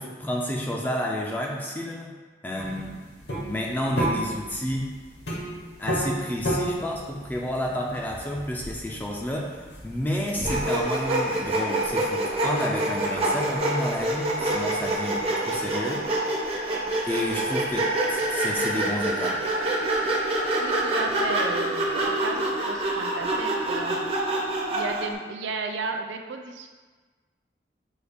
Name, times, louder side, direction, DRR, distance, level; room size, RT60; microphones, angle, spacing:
voice 1, 0.0-2.1 2.4-2.9 3.5-4.9 5.8-9.6 9.8-16.1 17.0-19.4, equal, 10° left, -1 dB, 0.3 m, -30 dB
sound 1, 2.5-10.8, right 1 dB, 70° left, 1.0 m, -32 dB
Sawing, 10.4-25.1, right 1 dB, 35° right, 0.6 m, -26 dB
voice 2, 20.6-21.9 22.2-24.0 24.7-26.7, right 4 dB, 90° right, 4 dB, 0.4 m, -33 dB
6.3 x 2.4 x 3.4 m, 1.4 s
head